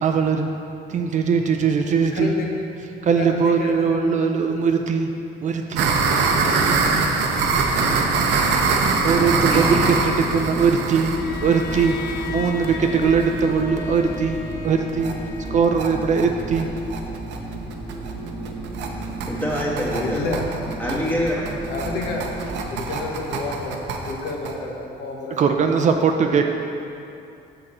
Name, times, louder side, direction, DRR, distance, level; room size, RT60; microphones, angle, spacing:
voice 1, 0.0-0.5 0.9-2.3 3.0-5.1 5.4-5.9 9.0-11.1 11.4-11.9 12.3-15.1 15.5-16.7 25.4-26.4, right 5 dB, 45° right, 5 dB, 0.5 m, -20 dB
voice 2, 1.4-1.7 2.1-2.5 3.1-4.8 11.3-11.4 12.4-12.5 20.0-20.5 21.7-22.3 22.7-25.4, left 3 dB, 70° left, 0 dB, 1.0 m, -30 dB
sound 1, 5.8-13.4 13.8-13.9 14.1-14.2 14.5-14.6 14.9-15.1 15.5-24.5, right 4 dB, 85° right, 0.7 m, -23 dB
sound 2, 7.2-22.9, right 1 dB, 15° right, 1.2 m, -33 dB
voice 3, 9.2-9.8 19.3-20.2 20.8-21.4, equal, 10° left, -4 dB, 1.3 m, -26 dB
Bowed string instrument, 11.1-16.2, left 4 dB, 85° left, 0.6 m, -34 dB
6.6 x 6.3 x 4.3 m, 2.6 s
cardioid pair, 135°, 18 cm